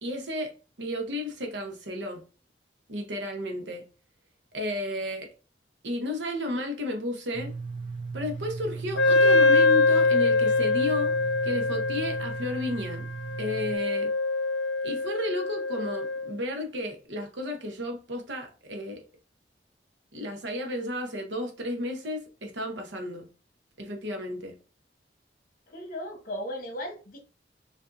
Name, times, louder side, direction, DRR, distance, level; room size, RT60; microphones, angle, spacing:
voice 1, 0.0-0.5 0.8-2.2 2.9-3.9 4.5-5.3 5.8-7.5 8.1-11.1 11.4-13.1 13.4-14.1 14.8-19.0 20.1-23.3 23.8-24.6, left 1 dB, 80° right, 1.0 m, -33 dB
sound 1, 7.3-13.8, right 4 dB, 25° right, 0.6 m, -37 dB
Wind instrument woodwind instrument, 9.0-16.3, left 3 dB, 90° left, 0.5 m, -24 dB
voice 2, 25.7-27.2, equal, 50° left, 1.0 m, -36 dB
4.6 x 2.6 x 2.6 m
head